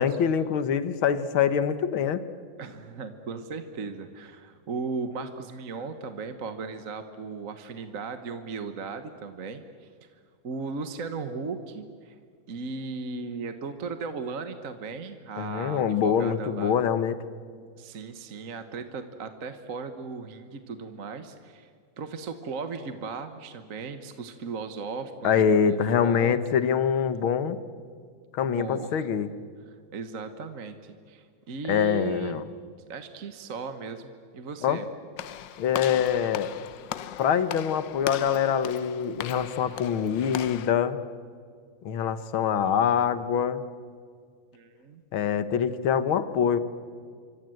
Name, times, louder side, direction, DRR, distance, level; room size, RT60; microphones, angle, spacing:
voice 1, 0.0-2.2 15.4-17.2 25.2-27.6 28.3-29.3 31.7-32.4 34.6-34.8 35.6-36.5 37.2-41.0 41.8-43.6 45.1-46.6, left 8 dB, 85° left, 13 dB, 2.1 m, -24 dB
voice 2, 2.6-10.1 10.4-12.2 12.5-16.7 17.8-21.7 22.0-26.4 28.6-29.0 29.9-32.4 32.9-34.9 44.5-45.0, right 4 dB, 45° right, 9 dB, 1.6 m, -36 dB
Walk footsteps / Slam, 35.2-40.7, left 11 dB, 70° left, 1.4 m, -38 dB
28.0 x 24.5 x 7.9 m, 2.1 s
omnidirectional pair, 2.2 m